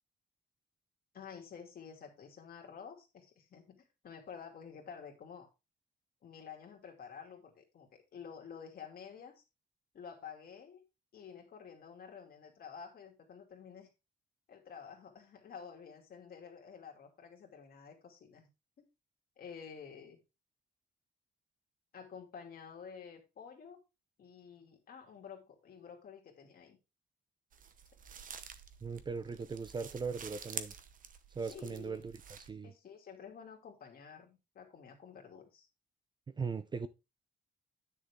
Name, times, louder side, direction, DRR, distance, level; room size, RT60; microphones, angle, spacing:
voice 1, 1.1-5.5 6.2-9.4 9.9-10.8 11.1-13.9 14.5-18.5 18.8-18.9 19.4-20.2 21.9-23.8 24.2-26.8 31.5-32.1 32.6-35.7, left 7 dB, 55° left, 2.7 m, -50 dB
sound 1, 27.5-32.5, right 7 dB, 45° right, 0.9 m, -48 dB
voice 2, 28.8-30.7 31.3-32.7 36.3-36.9, right 5 dB, 25° right, 0.5 m, -39 dB
10.0 x 6.5 x 3.6 m
wide cardioid pair, 170°, 19 cm